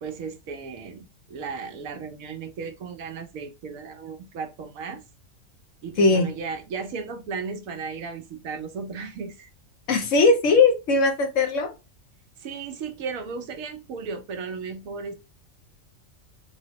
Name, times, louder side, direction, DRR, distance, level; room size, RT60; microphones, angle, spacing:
voice 1, 0.0-5.0 5.8-9.5 12.4-15.1, right 5 dB, 90° right, 1.1 m, -35 dB
voice 2, 6.0-6.3 9.9-11.7, left 3 dB, 70° left, 1.1 m, -19 dB
3.5 x 2.1 x 2.8 m
omnidirectional pair, 1.4 m